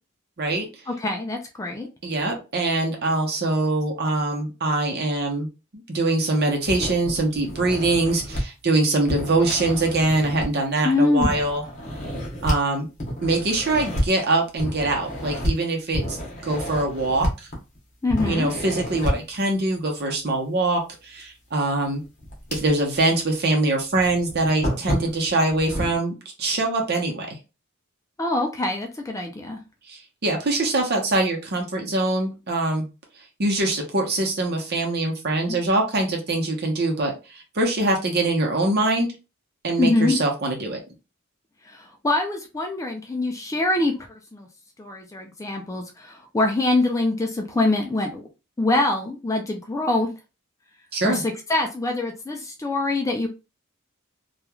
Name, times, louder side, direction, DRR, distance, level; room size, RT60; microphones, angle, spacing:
voice 1, 0.9-1.9 10.8-11.4 18.0-18.5 28.2-29.6 35.5-35.6 39.8-40.2 41.7-43.9 44.3-44.5 44.8-48.2 48.6-50.1 51.0-53.3, left 2 dB, 15° left, 3 dB, 0.3 m, -24 dB
voice 2, 2.0-5.5 5.7-11.6 12.4-12.9 13.2-16.2 16.4-17.3 18.3-22.0 22.5-27.4 29.9-32.9 33.4-39.1 39.6-40.8 50.9-51.2, right 2 dB, 50° right, 1 dB, 0.8 m, -23 dB
sound 1, 6.6-8.4 9.1-10.7 11.2-12.6 13.0-14.1 14.6-15.5 15.9-17.8 18.1-19.3 21.2-21.3 21.8-23.0 23.3-23.4 23.9-26.0, equal, 35° left, 1.0 m, -29 dB
3.0 x 2.4 x 2.3 m, 0.29 s
head